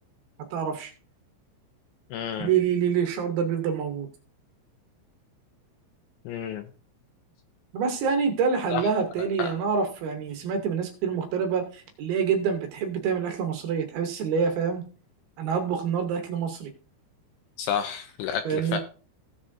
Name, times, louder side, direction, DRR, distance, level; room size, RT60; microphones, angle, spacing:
voice 1, 0.5-0.9 2.4-4.1 7.7-14.8 15.4-16.7 18.5-18.8, right 6 dB, 75° right, 5 dB, 2.3 m, -26 dB
voice 2, 2.1-2.5 6.3-6.7 8.7-8.8 9.4-9.5 17.6-18.8, left 8 dB, 80° left, 6 dB, 2.8 m, -30 dB
16.5 x 7.3 x 2.6 m, 0.37 s
omnidirectional pair, 5.7 m